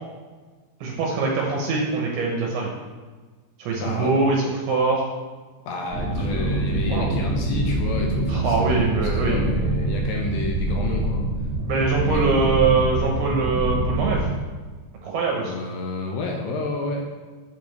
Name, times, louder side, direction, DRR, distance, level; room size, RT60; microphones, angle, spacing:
voice 1, 0.8-2.7 3.6-5.0 6.9-7.1 8.3-9.4 11.7-14.3 15.0-15.5, right 4 dB, 75° right, -1 dB, 2.6 m, -23 dB
voice 2, 3.7-4.1 5.7-11.2 12.1-12.2 15.4-17.1, left 3 dB, 75° left, 0 dB, 2.2 m, -30 dB
sound 1, 5.9-14.3, right 2 dB, 50° right, 0.8 m, -25 dB
7.9 x 6.8 x 3.2 m, 1.4 s
omnidirectional pair, 4.9 m